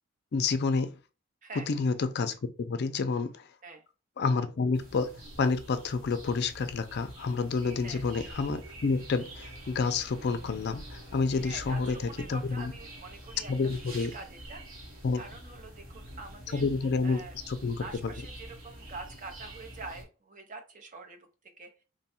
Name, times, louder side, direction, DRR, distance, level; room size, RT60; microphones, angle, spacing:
voice 1, 0.3-1.0 1.7-3.5 4.2-5.1 5.4-12.0 12.3-12.7 13.5-14.1 15.0-15.2 16.5-18.1, left 4 dB, 50° left, 0.4 m, -29 dB
voice 2, 1.4-1.7 3.6-3.8 7.8-8.1 11.4-13.5 13.8-14.6 15.2-16.6 17.0-17.3 17.8-21.3 21.6-21.7, right 3 dB, 40° right, 0.7 m, -45 dB
sound 1, 4.7-20.0, right 1 dB, 70° right, 1.5 m, -46 dB
3.2 x 2.3 x 4.3 m
head